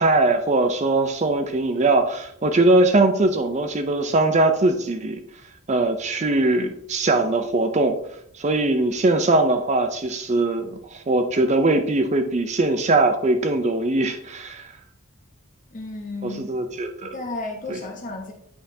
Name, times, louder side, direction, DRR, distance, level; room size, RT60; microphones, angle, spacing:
voice 1, 0.0-5.2 5.7-8.0 8.3-14.7 16.2-17.1 17.7-17.8, right 2 dB, 30° right, 7 dB, 0.4 m, -21 dB
voice 2, 15.7-16.5 17.0-18.3, left 2 dB, 35° left, 2 dB, 0.9 m, -33 dB
8.6 x 5.7 x 2.7 m, 0.71 s
head